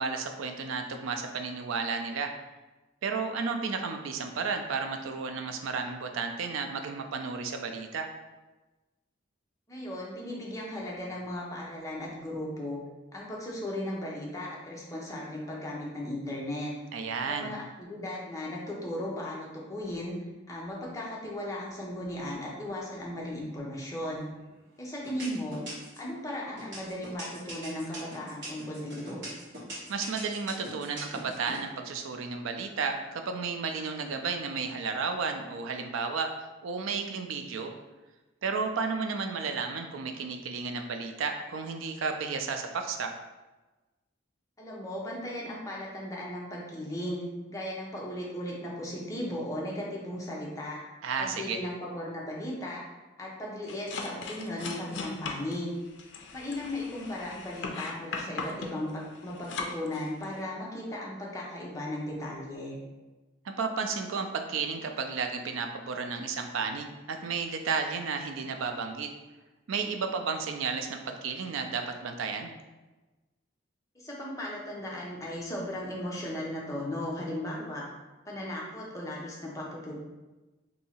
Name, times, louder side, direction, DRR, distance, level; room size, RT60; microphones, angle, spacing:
voice 1, 0.0-2.3 3.0-8.1 16.9-17.5 29.9-36.3 36.6-37.7 38.4-43.1 51.0-51.6 63.4-69.1 69.7-72.5, right 5 dB, 85° right, 5 dB, 0.4 m, -33 dB
voice 2, 9.7-12.8 13.1-16.7 17.3-20.2 20.5-24.3 24.8-25.6 26.0-29.3 44.6-47.2 47.5-50.8 51.2-52.8 53.2-55.7 56.3-62.8 73.9-77.9 78.3-80.1, left 1 dB, 15° left, -4 dB, 0.6 m, -36 dB
sound 1, 24.1-24.6 25.0-26.1 26.6-31.6, right 1 dB, 60° right, 1.4 m, -41 dB
sound 2, 53.7-60.4, left 4 dB, 65° left, 0.4 m, -39 dB
2.7 x 2.7 x 4.2 m, 1.1 s
head